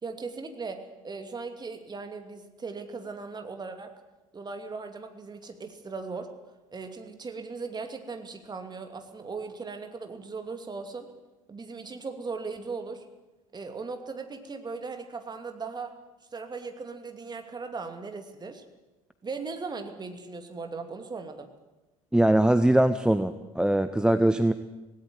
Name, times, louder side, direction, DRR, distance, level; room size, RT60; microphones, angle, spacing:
voice 1, 0.0-3.9 4.3-6.3 6.7-11.1 11.5-13.0 13.5-15.9 16.3-18.6 19.2-21.5, right 4 dB, 25° right, 6 dB, 2.7 m, -38 dB
voice 2, 22.1-24.5, right 1 dB, 5° right, 11 dB, 0.8 m, -22 dB
17.5 x 17.5 x 9.4 m, 1.1 s
figure-of-eight pair, 60°, 18 cm